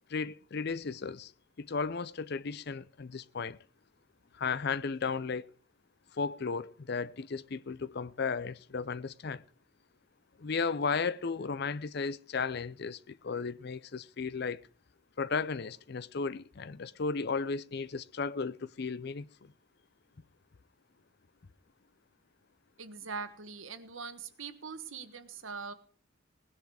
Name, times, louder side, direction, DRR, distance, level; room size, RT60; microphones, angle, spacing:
voice 1, 0.1-1.3 1.6-3.6 4.3-5.5 6.2-9.4 10.4-14.6 15.2-19.3, left 5 dB, 55° left, 0.5 m, -34 dB
voice 2, 22.8-25.7, right 5 dB, 90° right, 1.4 m, -42 dB
18.0 x 10.5 x 4.8 m
head